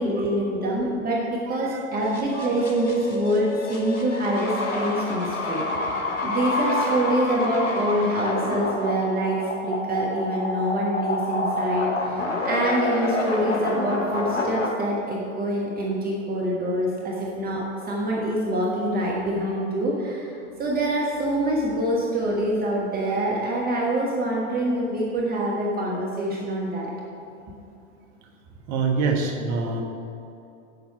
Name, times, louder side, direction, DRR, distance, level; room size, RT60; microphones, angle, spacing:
voice 1, 0.0-20.3 20.6-26.9, right 1 dB, 25° right, -3 dB, 1.3 m, -25 dB
voice 2, 1.5-2.7 28.7-29.8, right 4 dB, 45° right, 3 dB, 1.2 m, -27 dB
sound 1, 2.0-14.7, left 2 dB, 90° left, 1.2 m, -28 dB
8.6 x 6.7 x 4.9 m, 2.7 s
hypercardioid pair, 95°, 38 cm